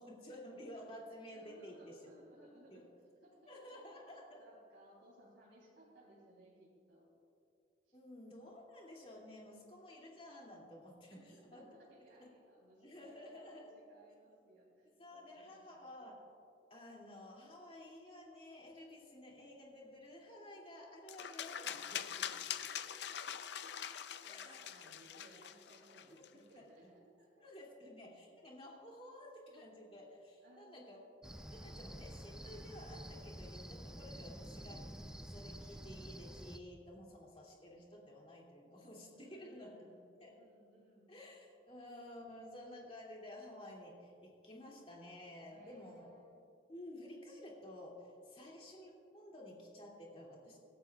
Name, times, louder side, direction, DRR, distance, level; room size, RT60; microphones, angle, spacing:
voice 1, 0.0-2.0 2.7-2.8 3.5-4.4 7.9-11.6 12.2-12.3 12.8-13.7 15.0-16.2 16.7-22.3 24.2-24.6 26.5-26.6 27.4-31.0 31.5-34.9 35.3-39.8 40.2-40.3 41.1-46.1 46.7-50.6, left 1 dB, 30° left, -3 dB, 2.6 m, -53 dB
voice 2, 1.3-2.9 3.2-3.5 4.4-7.1 7.9-8.0 11.1-15.9 22.6-27.4 30.4-31.2 39.1-41.1 45.5-46.4, right 1 dB, 85° right, -6 dB, 3.2 m, -63 dB
sound 1, 21.1-26.3, left 9 dB, 60° left, 0.5 m, -44 dB
Cricket, 31.2-36.6, equal, 5° right, 0.4 m, -49 dB
26.0 x 12.5 x 2.4 m, 2.5 s
head